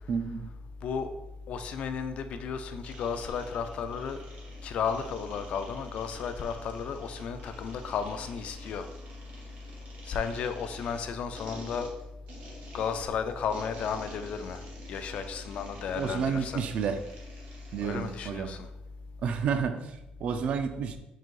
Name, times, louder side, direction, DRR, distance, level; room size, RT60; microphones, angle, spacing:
voice 1, 0.1-0.5 16.0-17.0 17.7-18.5 19.2-21.0, right 6 dB, 50° right, 8 dB, 0.3 m, -30 dB
voice 2, 1.5-4.2 4.6-8.9 10.1-11.9 12.7-14.6 14.9-16.6 17.8-18.7, left 6 dB, 50° left, 8 dB, 0.3 m, -33 dB
sound 1, 2.8-18.2, right 1 dB, 80° right, 1.2 m, -50 dB
3.8 x 2.7 x 4.5 m, 0.91 s
cardioid pair, 180°, 3 cm